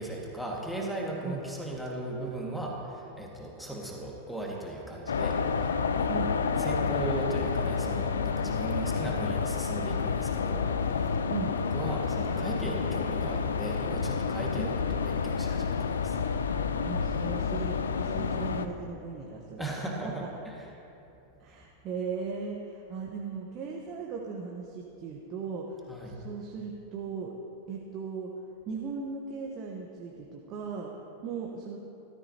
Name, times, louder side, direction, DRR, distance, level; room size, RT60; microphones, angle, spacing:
voice 1, 0.0-6.3 6.6-11.3 11.6-16.8 19.6-20.7 21.4-21.6 25.9-26.2, right 1 dB, ahead, -2 dB, 2.1 m, -37 dB
sound 1, 5.1-18.7, left 5 dB, 70° left, 0.6 m, -29 dB
voice 2, 16.8-19.7 20.0-20.3 21.4-27.3 27.7-28.3 28.7-30.9 31.2-31.8, right 5 dB, 35° right, -2 dB, 1.3 m, -37 dB
18.5 x 13.5 x 3.0 m, 2.9 s
figure-of-eight pair, 90°, 0 cm